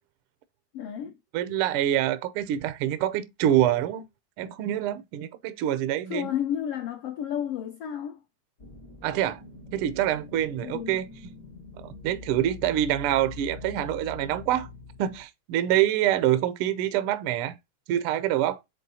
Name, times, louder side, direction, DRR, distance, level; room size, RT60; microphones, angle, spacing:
voice 1, 0.7-1.2 6.1-8.2 10.6-11.0, left 9 dB, 80° left, 1.4 m, -31 dB
voice 2, 1.3-4.1 4.4-6.3 9.0-9.4 9.7-11.1 11.8-14.7 15.0-17.6 17.9-18.6, right 12 dB, 90° right, 1.2 m, -26 dB
sound 1, 8.6-15.2, left 3 dB, 60° left, 0.9 m, -44 dB
9.0 x 3.8 x 2.7 m
omnidirectional pair, 3.3 m